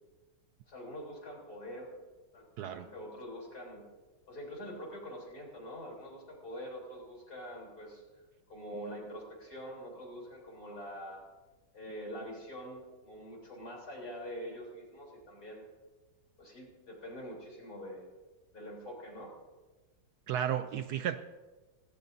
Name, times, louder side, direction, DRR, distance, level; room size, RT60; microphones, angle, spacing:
voice 1, 0.7-1.9 2.3-3.9 4.3-8.0 8.5-11.2 11.7-15.6 16.4-18.1 18.5-19.3, equal, 55° left, -2 dB, 4.2 m, -45 dB
voice 2, 20.3-21.2, right 10 dB, 70° right, 11 dB, 1.0 m, -33 dB
17.5 x 17.0 x 2.7 m, 1.2 s
omnidirectional pair, 1.9 m